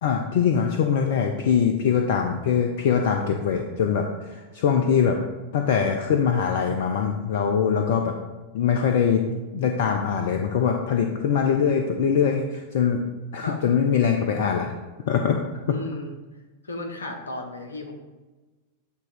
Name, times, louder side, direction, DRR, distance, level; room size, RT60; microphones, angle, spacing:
voice 1, 0.0-5.2 5.5-8.1 8.5-9.2 9.5-13.0 13.3-14.7 15.1-15.4 15.7-15.8, left 7 dB, 55° left, 3 dB, 0.5 m, -22 dB
voice 2, 15.7-16.1 16.6-17.9, left 2 dB, 75° left, 4 dB, 0.9 m, -34 dB
8.2 x 2.9 x 4.8 m, 1.2 s
figure-of-eight pair, 90°, 0 cm